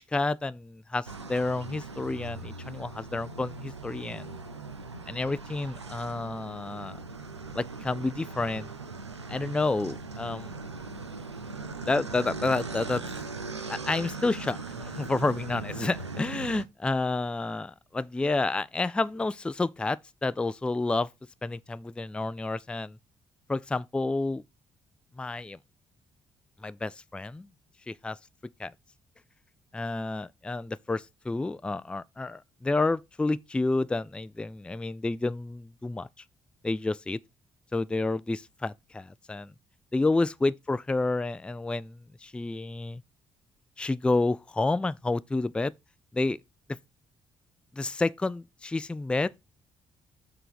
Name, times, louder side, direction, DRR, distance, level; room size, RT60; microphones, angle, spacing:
voice 1, 0.0-4.3 5.1-7.0 7.5-8.7 9.3-10.6 11.9-13.0 13.7-21.1 21.4-23.0 23.5-24.4 25.2-25.6 26.6-27.5 27.9-28.2 28.6-28.7 29.7-36.1 36.6-37.2 37.7-39.5 39.9-43.0 43.8-45.7 46.1-46.4 47.7-49.3, left 3 dB, 5° left, 0.3 m, -30 dB
sound 1, 1.1-16.6, right 3 dB, 85° right, 0.4 m, -40 dB
6.7 x 3.8 x 6.0 m
figure-of-eight pair, 40°, 14 cm